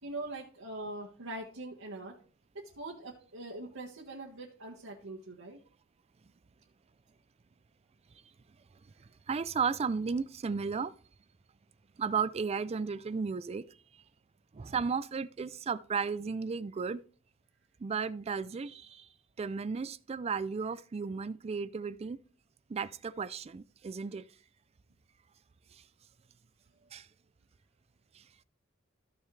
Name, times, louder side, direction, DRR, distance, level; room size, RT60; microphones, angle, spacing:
voice 1, 0.0-2.1 2.5-5.6, right 2 dB, 75° right, 1.5 m, -42 dB
voice 2, 9.0-10.9 12.0-13.6 14.5-17.0 17.8-19.1 19.4-22.2 22.7-24.3 25.7-25.8 26.9-27.1 28.1-28.2, right 5 dB, 30° right, 0.4 m, -34 dB
13.5 x 6.3 x 3.3 m
head